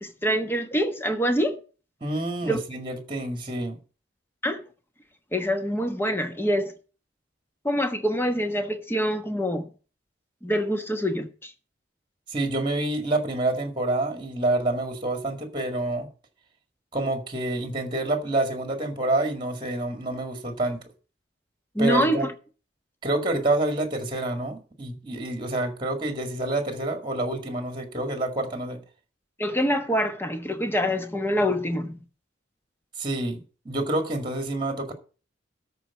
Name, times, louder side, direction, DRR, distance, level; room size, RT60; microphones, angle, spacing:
voice 1, 0.0-1.6 2.4-2.6 4.4-4.6 5.3-6.7 7.6-9.7 10.4-11.5 21.7-22.3 29.4-32.0, equal, 10° left, 1.1 m, -25 dB
voice 2, 2.0-3.8 12.3-16.1 16.9-20.8 21.8-22.3 23.0-28.8 33.0-34.9, right 2 dB, 25° right, 2.0 m, -28 dB
13.0 x 4.7 x 7.1 m
head